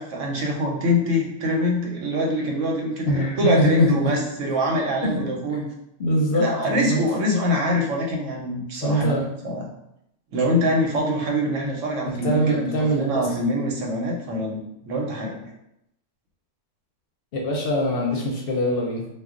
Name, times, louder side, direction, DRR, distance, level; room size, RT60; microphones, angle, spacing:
voice 1, 0.0-5.6 6.3-9.1 9.4-9.7 10.3-15.4, equal, 90° right, 0 dB, 1.0 m, -24 dB
voice 2, 3.1-4.1 5.0-5.2 5.5-5.6 6.0-7.0 8.8-9.3 12.1-13.4 17.3-19.1, equal, 60° left, -1 dB, 0.7 m, -23 dB
2.3 x 2.2 x 3.6 m, 0.80 s
omnidirectional pair, 1.2 m